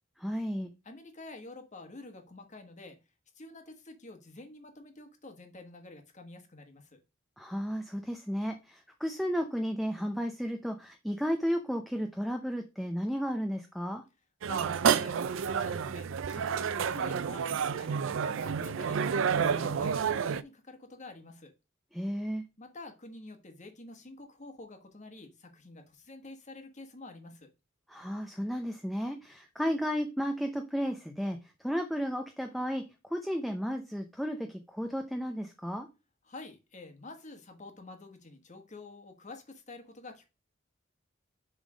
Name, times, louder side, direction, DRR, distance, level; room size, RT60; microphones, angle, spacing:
voice 1, 0.2-0.7 7.4-14.0 21.9-22.4 27.9-32.8 33.1-35.9, equal, ahead, 4 dB, 0.6 m, -33 dB
voice 2, 0.8-3.0 3.3-7.0 14.4-21.5 22.6-27.5 36.2-40.3, left 2 dB, 40° left, 6 dB, 1.4 m, -48 dB
sound 1, 14.4-20.4, right 7 dB, 70° right, 0.4 m, -29 dB
7.2 x 3.7 x 5.0 m, 0.28 s
head